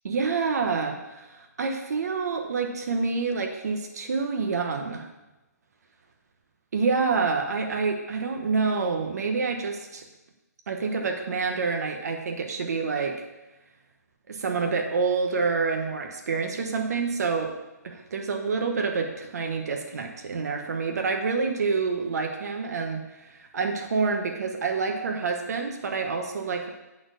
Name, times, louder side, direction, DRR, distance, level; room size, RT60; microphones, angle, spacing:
voice 1, 0.0-5.1 6.7-10.0 10.7-13.2 14.3-17.6 17.8-26.7, right 4 dB, 65° right, 4 dB, 1.2 m, -27 dB
8.9 x 4.2 x 6.5 m, 1.0 s
hypercardioid pair, 165°, 9 cm